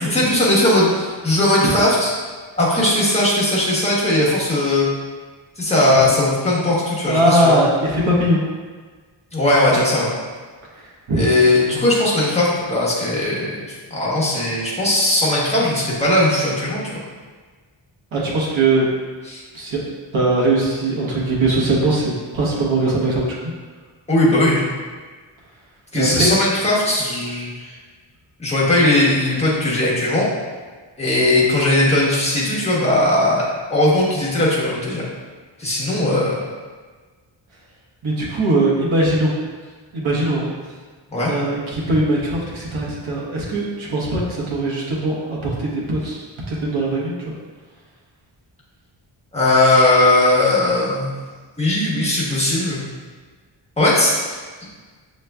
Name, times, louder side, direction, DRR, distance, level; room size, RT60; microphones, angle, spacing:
voice 1, 0.1-2.1 2.6-4.9 5.6-7.6 9.3-10.1 11.1-17.0 19.3-19.4 24.1-24.7 25.9-27.7 28.4-30.3 31.0-35.0 35.6-36.4 41.1-41.3 49.3-51.1 51.6-52.8 53.8-54.4, left 1 dB, 15° left, -7 dB, 1.1 m, -18 dB
voice 2, 7.1-8.4 10.7-11.3 18.1-18.9 19.5-19.8 20.1-23.3 25.9-26.3 35.9-36.0 38.0-39.3 39.9-40.5 41.3-47.3, right 2 dB, 90° right, -5 dB, 1.1 m, -20 dB
6.5 x 3.1 x 2.3 m, 1.4 s
wide cardioid pair, 150°, 47 cm